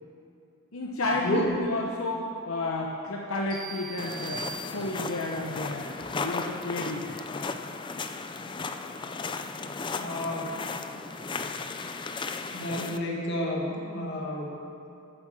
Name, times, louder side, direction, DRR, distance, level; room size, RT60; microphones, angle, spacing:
voice 1, 0.7-5.9 6.2-7.2, left 2 dB, 85° left, -1 dB, 0.9 m, -31 dB
sound 1, 3.5-5.3, right 5 dB, 85° right, 2.7 m, -41 dB
sound 2, 4.0-13.0, left 4 dB, 20° left, 0.4 m, -35 dB
voice 2, 10.0-10.6 12.5-14.6, left 1 dB, 55° left, -1 dB, 1.9 m, -31 dB
8.8 x 8.3 x 7.3 m, 2.6 s
head